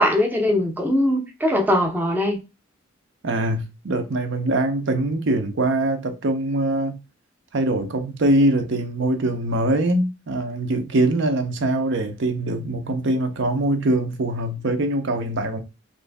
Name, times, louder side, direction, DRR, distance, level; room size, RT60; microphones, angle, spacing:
voice 1, 0.0-2.4, left 1 dB, 10° right, 0.6 m, -20 dB
voice 2, 3.2-7.0 7.5-15.6, right 1 dB, 60° right, 0.6 m, -23 dB
3.0 x 2.6 x 3.4 m
head